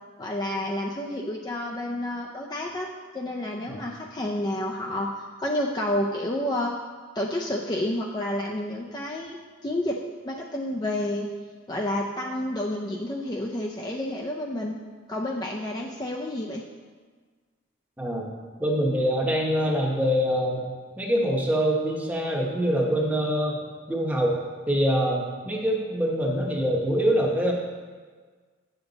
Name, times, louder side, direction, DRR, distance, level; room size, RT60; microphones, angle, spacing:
voice 1, 0.2-2.9 3.1-6.7 7.1-9.4 9.6-10.0 10.2-11.3 11.7-14.8 15.1-16.6, left 1 dB, 20° left, -1 dB, 0.4 m, -29 dB
voice 2, 18.0-18.3 18.6-20.7 21.0-24.4 24.7-27.5, equal, 10° right, -1 dB, 0.9 m, -24 dB
8.1 x 7.1 x 4.0 m, 1.5 s
head